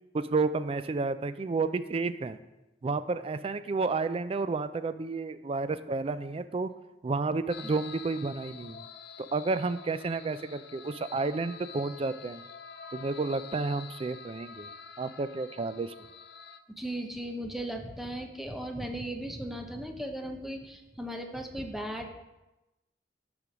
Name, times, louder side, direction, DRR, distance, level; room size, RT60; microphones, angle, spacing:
voice 1, 0.1-2.4 2.8-6.7 7.0-8.8 9.3-12.4 12.9-14.7 15.0-15.9, right 3 dB, 35° right, 13 dB, 0.3 m, -31 dB
sound 1, 7.5-16.6, left 6 dB, 60° left, 0.5 m, -47 dB
voice 2, 16.7-22.1, right 1 dB, ahead, 3 dB, 0.7 m, -37 dB
6.7 x 5.1 x 6.1 m, 1.0 s
head